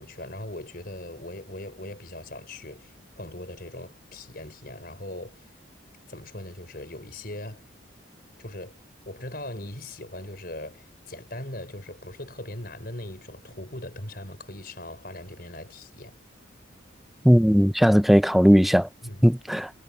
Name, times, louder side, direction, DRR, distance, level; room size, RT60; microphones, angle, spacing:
voice 1, 0.0-5.5 6.1-7.7 8.4-8.8 9.1-16.1 19.0-19.2, left 1 dB, 50° left, 5.8 m, -40 dB
voice 2, 17.2-18.9 19.2-19.7, equal, ahead, 0.5 m, -17 dB
head